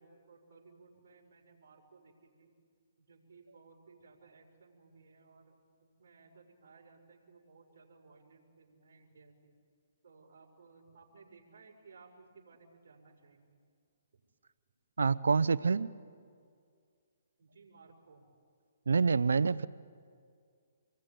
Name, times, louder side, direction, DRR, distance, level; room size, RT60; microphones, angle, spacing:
voice 1, 0.0-2.5 3.0-5.5 5.8-9.5 10.0-13.6 14.1-14.2 17.4-18.2, right 4 dB, 65° right, -1 dB, 5.9 m, -59 dB
voice 2, 15.0-15.9 18.9-19.7, right 5 dB, 85° right, 17 dB, 0.7 m, -27 dB
27.0 x 22.0 x 9.3 m, 2.2 s
hypercardioid pair, 145°, 0 cm